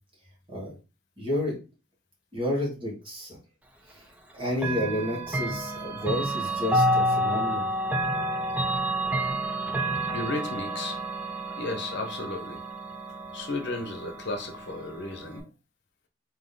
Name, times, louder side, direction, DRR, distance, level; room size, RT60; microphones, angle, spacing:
voice 1, 1.2-1.5 2.3-3.4 3.9-4.0 4.3-7.7, left 1 dB, 25° right, 1.8 m, -31 dB
Chime / Clock, 4.6-15.4, right 1 dB, 5° right, 0.5 m, -29 dB
voice 2, 9.9-11.0 11.6-12.6 13.3-15.5, left 2 dB, 60° left, 0.8 m, -34 dB
3.8 x 2.8 x 3.8 m
head